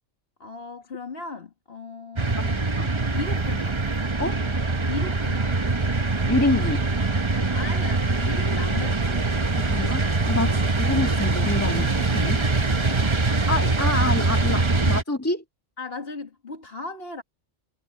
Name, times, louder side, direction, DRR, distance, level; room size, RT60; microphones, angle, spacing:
voice 1, 0.4-2.7 3.1-3.8 4.8-5.6 7.5-9.3 10.4-10.6 12.7-13.2 14.7-14.9 15.8-17.2, left 3 dB, 50° left, 2.2 m, -37 dB
sound 1, 2.2-15.0, right 3 dB, 25° right, 1.0 m, -23 dB
voice 2, 6.3-6.9 9.6-12.4 13.5-15.4, left 2 dB, 10° left, 1.8 m, -27 dB
omnidirectional pair, 1.2 m